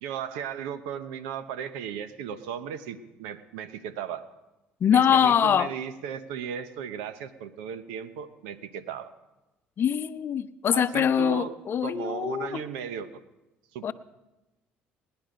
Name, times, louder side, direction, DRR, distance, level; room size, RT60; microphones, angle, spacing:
voice 1, 0.0-4.2 4.9-9.1 10.7-11.5 11.8-13.2 13.7-13.9, right 8 dB, 85° right, 13 dB, 0.8 m, -36 dB
voice 2, 4.8-5.7 9.8-12.6 13.8-13.9, left 8 dB, 50° left, 13 dB, 0.7 m, -23 dB
19.0 x 10.5 x 5.1 m, 1.0 s
hypercardioid pair, 65°, 5 cm